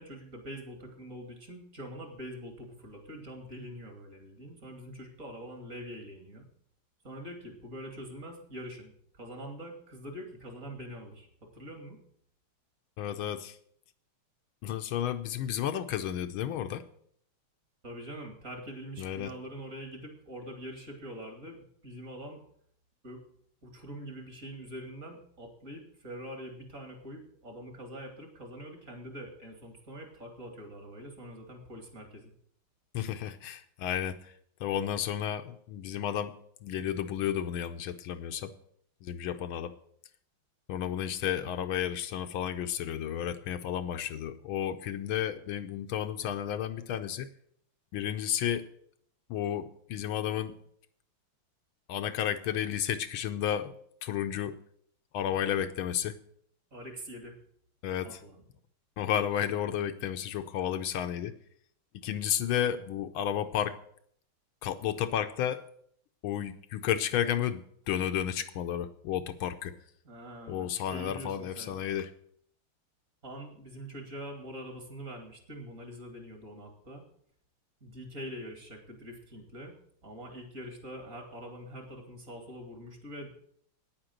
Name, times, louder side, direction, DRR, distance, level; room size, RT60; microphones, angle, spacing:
voice 1, 0.0-6.5 7.0-11.3 11.5-12.0 17.8-22.4 23.0-23.2 23.6-32.3 56.7-57.3 58.0-58.4 70.0-71.8 73.2-77.0 77.8-79.7 80.0-83.3, equal, 40° right, 3 dB, 2.8 m, -44 dB
voice 2, 13.0-13.6 14.6-16.8 19.0-19.3 32.9-34.2 34.6-36.4 36.6-38.5 39.0-39.7 40.7-47.3 47.9-48.7 49.3-50.5 51.9-53.7 54.0-54.6 55.1-56.2 57.8-58.2 59.0-61.3 62.0-63.8 64.6-65.6 66.2-69.7 70.5-72.1, left 10 dB, 75° left, 9 dB, 1.5 m, -32 dB
9.6 x 8.9 x 7.8 m, 0.65 s
omnidirectional pair, 2.3 m